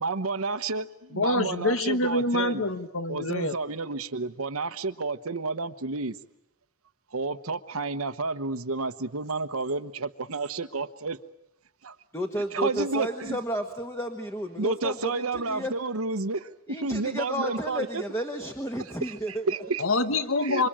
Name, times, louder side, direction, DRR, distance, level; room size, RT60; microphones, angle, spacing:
voice 1, 0.0-0.8 1.2-2.6 3.1-6.1 7.1-11.2 11.8-11.9 12.5-13.4 14.6-18.0 19.0-19.8 20.4-20.7, right 3 dB, 75° right, 10 dB, 1.1 m, -30 dB
voice 2, 1.2-3.5 19.8-20.7, left 2 dB, 65° left, 11 dB, 1.4 m, -26 dB
voice 3, 12.1-15.7 16.7-19.4, equal, 10° left, 5 dB, 1.5 m, -32 dB
27.0 x 25.0 x 8.9 m, 0.81 s
head